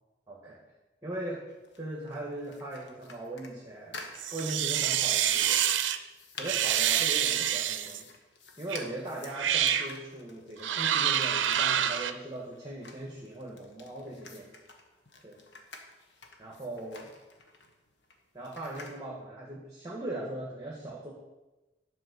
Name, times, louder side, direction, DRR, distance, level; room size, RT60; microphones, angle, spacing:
voice 1, 0.3-0.6 1.0-1.4 1.8-4.0 4.3-5.7 6.4-8.1 8.6-14.6 15.2-15.4 16.4-17.1 18.3-21.1, right 1 dB, 20° right, -4 dB, 1.4 m, -39 dB
sound 1, 1.5-19.0, left 3 dB, 70° left, 1.2 m, -50 dB
sound 2, 4.2-6.0 6.4-8.0 8.7-8.9 9.3-9.9 10.6-12.1, right 10 dB, 85° right, 0.6 m, -27 dB
11.0 x 4.5 x 6.7 m, 1.1 s
head